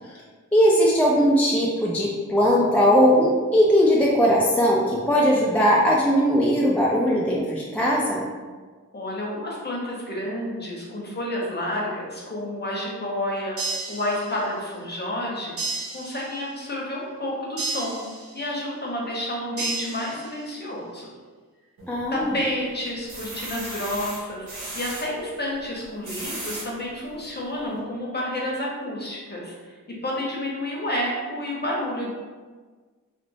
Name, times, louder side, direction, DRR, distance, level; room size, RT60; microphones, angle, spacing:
voice 1, 0.5-8.2 21.9-22.3, equal, 5° left, -4 dB, 0.3 m, -19 dB
voice 2, 8.9-15.6 15.9-18.0 18.3-21.1 22.1-24.5 24.7-29.8 30.0-32.1, left 1 dB, 35° left, -4 dB, 0.8 m, -30 dB
sound 1, 13.6-14.6 15.6-16.6 17.6-18.6 19.6-20.6, right 3 dB, 50° right, 0.7 m, -33 dB
sound 2, 21.8-22.4 22.9-25.0 25.8-26.7 27.3-27.4 27.7-27.8, right 1 dB, 80° right, 0.8 m, -36 dB
3.0 x 2.0 x 2.6 m, 1.4 s
wide cardioid pair, 80°, 31 cm